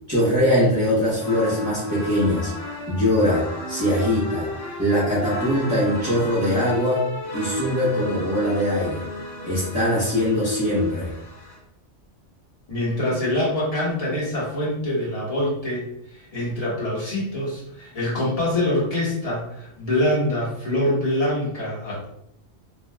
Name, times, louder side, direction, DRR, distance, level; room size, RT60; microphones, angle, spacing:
voice 1, 0.1-2.5 2.9-4.5 4.8-7.0 7.3-9.0 9.4-11.1, left 1 dB, 15° right, -10 dB, 0.8 m, -22 dB
sound 1, 1.2-11.6, left 1 dB, 90° left, 1.1 m, -34 dB
voice 2, 12.7-15.9 16.3-22.0, left 1 dB, 30° left, -6 dB, 1.1 m, -24 dB
2.6 x 2.2 x 3.3 m, 0.74 s
omnidirectional pair, 1.2 m